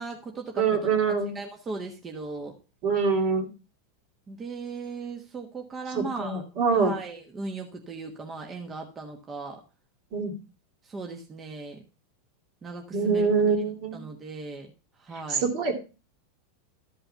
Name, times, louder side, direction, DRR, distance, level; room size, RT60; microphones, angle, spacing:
voice 1, 0.0-0.6 1.3-2.5 4.3-6.4 6.7-9.6 10.8-11.8 12.6-13.3 13.9-14.7 15.0-15.4, right 3 dB, 20° right, 2 dB, 1.3 m, -37 dB
voice 2, 0.6-1.3 2.8-3.5 5.9-7.0 10.1-10.3 12.9-14.0 15.3-15.7, right 5 dB, 50° right, 5 dB, 3.0 m, -24 dB
13.0 x 5.5 x 5.7 m, 0.32 s
supercardioid pair, 130°, 0 cm